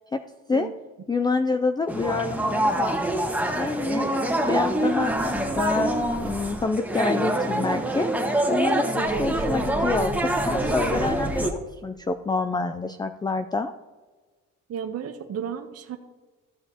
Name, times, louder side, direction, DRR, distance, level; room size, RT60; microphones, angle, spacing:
voice 1, 1.1-3.0 3.5-4.1 4.5-8.1 8.5-13.7, left 3 dB, 15° left, 8 dB, 0.4 m, -27 dB
sound 1, 1.9-11.5, right 1 dB, 5° right, 1.3 m, -25 dB
voice 2, 14.7-16.0, right 8 dB, 55° right, 6 dB, 0.8 m, -33 dB
14.0 x 6.9 x 2.9 m, 1.3 s
cardioid pair, 90°, 30 cm